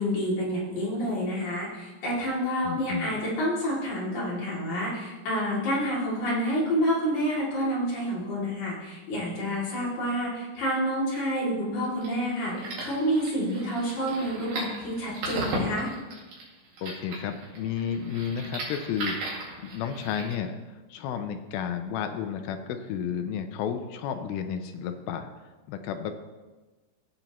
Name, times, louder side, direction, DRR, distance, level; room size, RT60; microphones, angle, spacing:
voice 1, 0.0-15.9, equal, 50° left, -6 dB, 3.9 m, -28 dB
voice 2, 2.6-3.2 16.8-25.3 25.7-26.1, left 8 dB, 80° left, 7 dB, 2.2 m, -32 dB
sound 1, 11.8-20.3, right 2 dB, 65° right, 3.9 m, -37 dB
15.5 x 7.8 x 3.0 m, 1.2 s
omnidirectional pair, 4.7 m